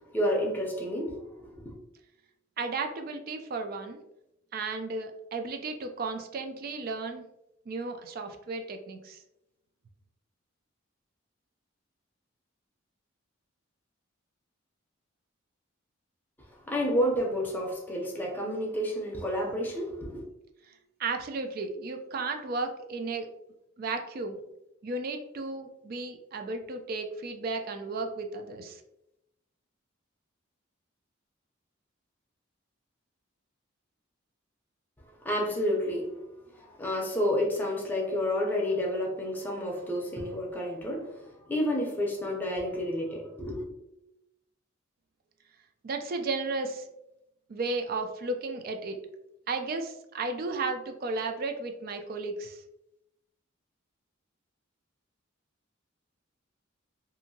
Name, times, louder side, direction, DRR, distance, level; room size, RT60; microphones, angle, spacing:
voice 1, 0.1-1.7 16.7-20.2 35.2-36.1 36.6-41.2 41.5-43.6, equal, 10° left, -2 dB, 0.5 m, -30 dB
voice 2, 2.6-4.0 4.5-7.2 7.7-9.2 20.7-20.8 21.0-23.3 23.8-24.4 24.8-28.8 45.8-46.8 47.5-49.0 49.5-52.6, right 3 dB, 45° right, 5 dB, 0.3 m, -34 dB
2.7 x 2.5 x 2.6 m, 0.87 s
head